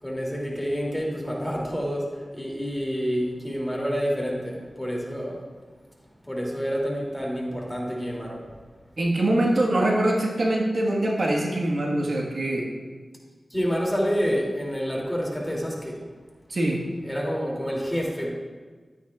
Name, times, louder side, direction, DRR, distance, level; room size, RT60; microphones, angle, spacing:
voice 1, 0.0-5.4 6.3-8.4 13.5-16.0 17.0-18.3, equal, 5° left, -2 dB, 2.8 m, -28 dB
voice 2, 9.0-12.7 16.5-16.8, right 1 dB, 70° right, -2 dB, 1.6 m, -23 dB
12.5 x 9.3 x 2.5 m, 1.4 s
cardioid pair, 45°, 0 cm